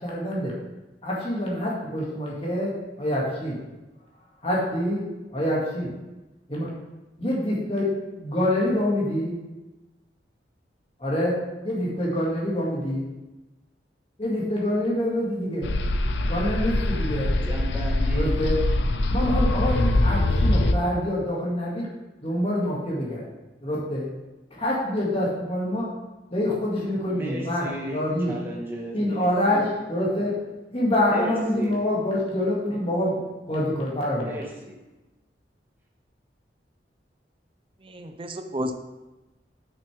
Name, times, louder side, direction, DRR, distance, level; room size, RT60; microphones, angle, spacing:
voice 1, 0.0-0.5 1.0-3.6 4.4-5.0 5.3-5.9 6.5-6.7 7.2-9.4 11.0-13.1 14.2-15.7 16.3-17.3 18.1-18.6 19.1-21.9 22.2-23.3 23.6-24.1 24.5-25.8 26.3-28.3 28.9-30.3 30.7-34.3, left 1 dB, 35° left, -5 dB, 2.2 m, -26 dB
sound 1, 15.6-20.7, left 1 dB, 80° left, 0.6 m, -23 dB
voice 2, 17.4-18.4 27.0-29.0 31.1-31.8 34.2-34.8, equal, 10° right, -3 dB, 1.6 m, -35 dB
voice 3, 37.8-38.7, equal, 30° right, 6 dB, 0.5 m, -32 dB
9.7 x 6.4 x 3.5 m, 1.1 s
head